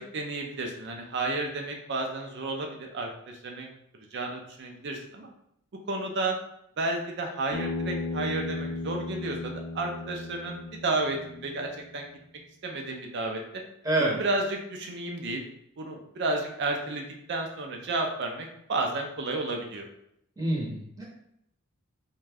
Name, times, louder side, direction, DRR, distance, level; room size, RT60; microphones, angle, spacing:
voice 1, 0.0-3.7 4.1-5.3 5.9-6.4 6.8-12.1 12.6-13.4 14.0-15.4 15.8-17.0 17.3-19.9, right 2 dB, 55° right, 2 dB, 0.5 m, -32 dB
Bass guitar, 7.5-11.8, left 2 dB, 40° left, 0.4 m, -35 dB
voice 2, 13.8-14.2 20.4-21.0, right 1 dB, 15° right, -4 dB, 0.8 m, -27 dB
2.5 x 2.3 x 3.3 m, 0.74 s
head